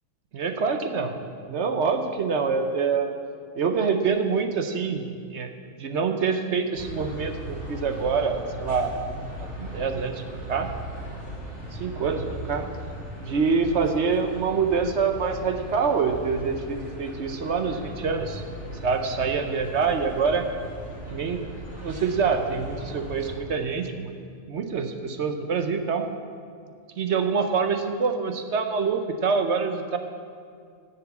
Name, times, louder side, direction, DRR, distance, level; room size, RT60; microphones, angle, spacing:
voice 1, 0.3-1.1 1.4-3.1 3.6-5.5 5.8-9.1 9.4-10.2 10.5-10.7 11.7-12.7 13.2-18.4 18.8-20.5 21.1-21.4 21.8-24.2 24.5-26.1 27.0-30.0, right 5 dB, 55° right, 6 dB, 0.9 m, -26 dB
sound 1, 6.8-23.3, right 1 dB, 5° right, 3.4 m, -38 dB
10.5 x 7.0 x 8.2 m, 2.2 s
omnidirectional pair, 1.6 m